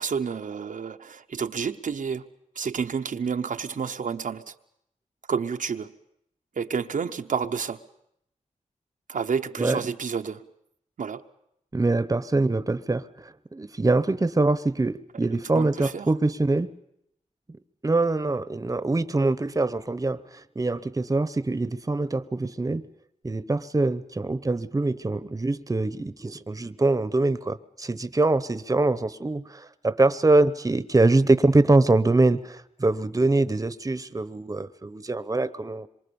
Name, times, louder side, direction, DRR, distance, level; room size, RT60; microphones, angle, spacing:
voice 1, 0.0-2.2 2.6-4.5 5.3-5.9 6.6-7.8 9.1-10.4 11.0-11.2 15.5-16.1, right 6 dB, 90° right, 6 dB, 0.9 m, -29 dB
voice 2, 11.7-16.7 17.8-20.2 20.6-22.8 23.2-35.9, right 2 dB, 25° right, 14 dB, 0.9 m, -24 dB
26.0 x 23.5 x 7.0 m, 0.76 s
wide cardioid pair, 80°, 13 cm